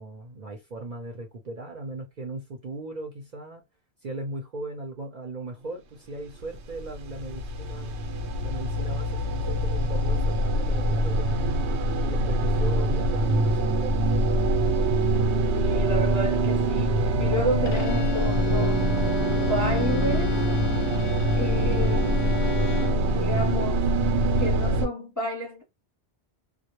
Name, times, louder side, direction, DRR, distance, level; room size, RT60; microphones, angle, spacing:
voice 1, 0.0-3.6 4.0-8.0 8.4-11.7 12.1-14.3, right 2 dB, 50° right, 0.6 m, -38 dB
sound 1, 6.4-24.9, right 1 dB, 85° right, 0.9 m, -24 dB
voice 2, 15.5-18.9 19.4-20.3 21.4-22.1 22.4-23.9 24.4-25.6, equal, 20° left, 0.7 m, -31 dB
Bowed string instrument, 17.7-23.1, left 6 dB, 55° left, 0.6 m, -32 dB
2.1 x 2.0 x 2.9 m
omnidirectional pair, 1.1 m